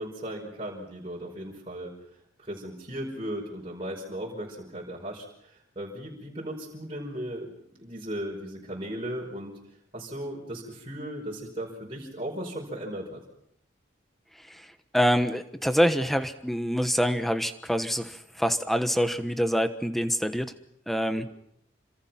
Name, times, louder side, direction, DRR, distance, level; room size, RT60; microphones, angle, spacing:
voice 1, 0.0-1.9 2.4-9.6 9.9-13.2, right 1 dB, 30° right, -2 dB, 5.2 m, -37 dB
voice 2, 14.9-20.5 20.9-21.3, equal, ahead, 10 dB, 1.2 m, -25 dB
27.5 x 26.0 x 5.9 m, 0.71 s
head